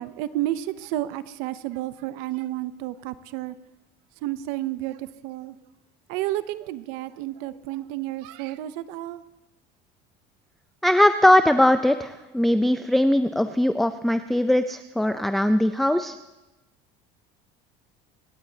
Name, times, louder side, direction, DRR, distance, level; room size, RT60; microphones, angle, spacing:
voice 1, 0.0-3.6 4.2-5.6 6.1-9.2, right 15 dB, 80° right, 14 dB, 0.6 m, -31 dB
voice 2, 10.8-16.2, left 1 dB, ahead, 9 dB, 0.4 m, -20 dB
26.5 x 11.5 x 2.8 m, 1.0 s
supercardioid pair, 115°, 21 cm